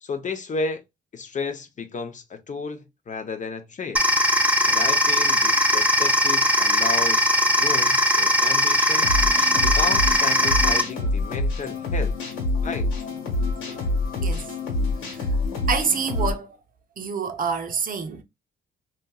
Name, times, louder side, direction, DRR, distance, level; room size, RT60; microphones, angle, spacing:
voice 1, 0.0-0.8 1.1-4.0 4.6-9.1 9.6-12.2 12.6-12.9, left 4 dB, 40° left, 0.6 m, -32 dB
sound 1, 4.0-10.8, equal, 5° right, 0.6 m, -20 dB
sound 2, 9.0-16.3, left 2 dB, 90° left, 1.5 m, -26 dB
voice 2, 14.2-14.6 15.0-15.4 15.7-16.6 17.0-18.2, right 6 dB, 45° right, 0.6 m, -27 dB
2.9 x 2.7 x 2.2 m
cardioid pair, 90°, 20 cm